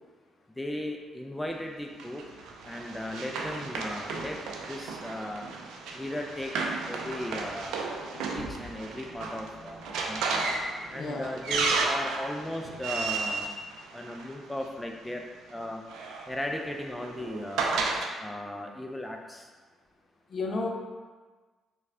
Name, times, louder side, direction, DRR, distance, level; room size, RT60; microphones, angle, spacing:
voice 1, 0.6-2.2 2.6-5.5 5.9-7.8 8.2-10.4 10.9-13.5 13.9-15.2 15.5-15.8 16.3-17.8 18.2-19.5, left 1 dB, 10° left, 2 dB, 0.3 m, -37 dB
Run, 2.0-14.6 15.6-18.1, right 3 dB, 85° right, 0.3 m, -33 dB
voice 2, 8.1-8.5 10.9-11.4 20.3-20.7, left 3 dB, 60° left, 0 dB, 0.5 m, -33 dB
3.2 x 2.2 x 3.6 m, 1.4 s
supercardioid pair, 65°, 0 cm